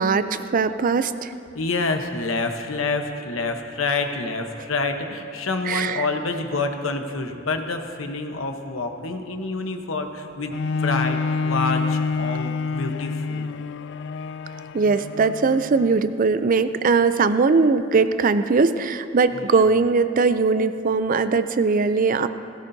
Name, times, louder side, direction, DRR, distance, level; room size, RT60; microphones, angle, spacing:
voice 1, 0.0-1.3 5.7-6.1 14.7-22.3, right 4 dB, 45° right, 12 dB, 0.4 m, -20 dB
voice 2, 1.5-13.5 19.3-19.6, left 3 dB, 90° left, 5 dB, 1.0 m, -27 dB
Bowed string instrument, 10.5-16.1 16.8-16.9, left 4 dB, 60° left, 0.3 m, -27 dB
17.5 x 16.5 x 2.7 m, 2.5 s
head